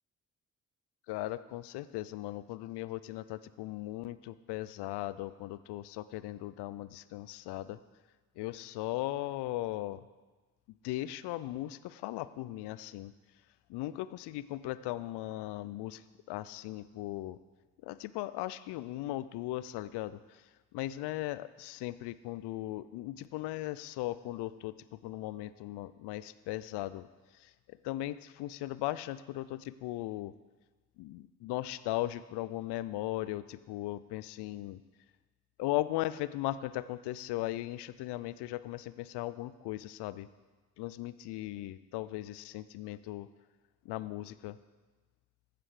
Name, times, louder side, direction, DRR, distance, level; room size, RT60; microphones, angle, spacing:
voice 1, 1.1-7.8 8.4-10.0 10.8-13.1 13.7-16.0 16.3-17.4 17.8-20.4 20.7-27.1 27.3-30.3 31.0-34.8 35.6-40.3 40.8-43.3 43.8-44.6, left 16 dB, 65° left, 15 dB, 0.6 m, -38 dB
15.0 x 5.1 x 4.9 m, 1.3 s
hypercardioid pair, 45°, 44 cm